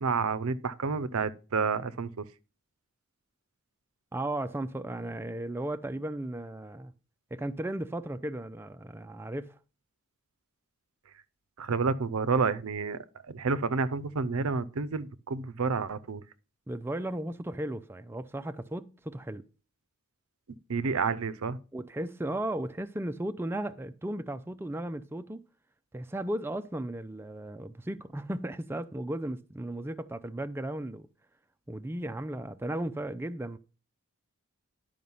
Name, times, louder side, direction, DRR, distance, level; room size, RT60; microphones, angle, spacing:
voice 1, 0.0-2.3 11.6-16.2 20.7-21.6, right 4 dB, 70° right, 0.6 m, -29 dB
voice 2, 4.1-6.9 7.3-9.6 16.7-19.4 21.7-25.4 25.9-31.1 31.7-33.6, right 1 dB, 10° right, 0.4 m, -35 dB
11.0 x 5.1 x 5.4 m
head